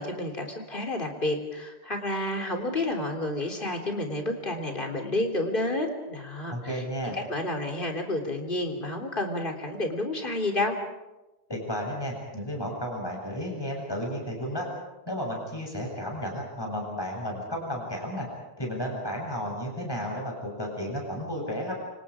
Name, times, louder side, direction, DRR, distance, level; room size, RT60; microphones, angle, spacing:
voice 1, 0.0-6.8 7.1-10.7, left 2 dB, 55° left, 3 dB, 3.6 m, -30 dB
voice 2, 6.5-7.2 11.5-14.7 15.1-18.3 18.6-21.7, equal, 20° left, -1 dB, 7.8 m, -33 dB
29.0 x 27.0 x 5.0 m, 1.0 s
omnidirectional pair, 1.1 m